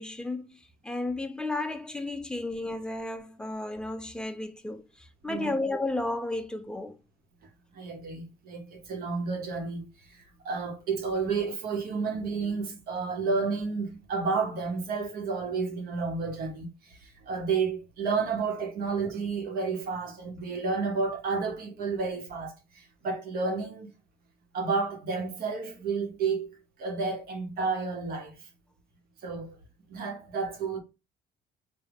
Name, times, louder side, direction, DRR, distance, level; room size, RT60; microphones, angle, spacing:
voice 1, 0.0-7.0, left 2 dB, 5° left, 0.4 m, -33 dB
voice 2, 7.7-23.9 24.5-28.4 29.2-29.6 29.9-30.8, right 4 dB, 65° right, 0.9 m, -31 dB
3.4 x 2.1 x 3.5 m
cardioid pair, 110°, 17 cm